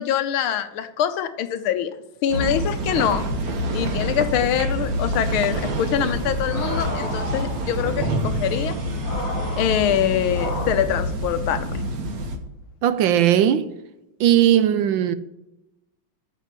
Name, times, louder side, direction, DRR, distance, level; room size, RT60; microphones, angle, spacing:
voice 1, 0.0-1.9 2.2-3.3 3.7-8.8 9.6-11.7, left 10 dB, 80° left, 1.6 m, -24 dB
sound 1, 2.3-12.4, right 1 dB, 50° right, 1.5 m, -27 dB
sound 2, 5.5-10.7, left 2 dB, 30° left, 2.7 m, -34 dB
voice 2, 12.8-13.7 14.2-15.2, right 11 dB, 75° right, 1.3 m, -18 dB
8.7 x 7.4 x 8.6 m
omnidirectional pair, 2.3 m